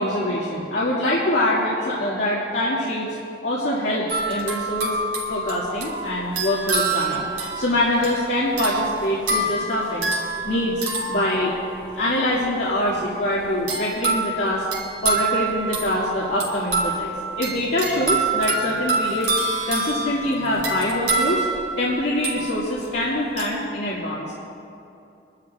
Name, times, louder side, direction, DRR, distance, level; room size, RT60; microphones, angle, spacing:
voice 1, 0.0-3.1 3.4-5.0 5.3-10.1 10.4-11.5 12.0-14.6 15.0-19.3 19.7-21.4 21.8-24.3, left 1 dB, 70° left, -7 dB, 2.1 m, -24 dB
sound 1, 4.1-12.0 13.7-22.9 23.4-23.6, right 3 dB, 90° right, 3.6 m, -27 dB
29.5 x 12.5 x 2.4 m, 2.7 s
head